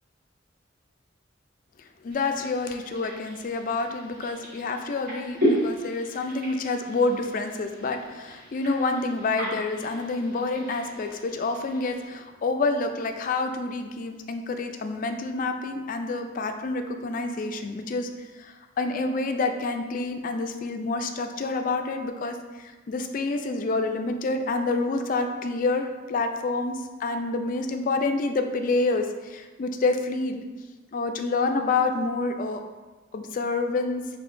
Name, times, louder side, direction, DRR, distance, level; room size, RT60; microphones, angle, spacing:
voice 1, 2.0-18.1 18.4-30.4 30.9-32.6 33.1-34.0, left 3 dB, 45° left, 6 dB, 0.3 m, -28 dB
sound 1, 2.1-12.0, equal, 50° right, 1.4 m, -34 dB
5.5 x 2.8 x 2.5 m, 1.3 s
head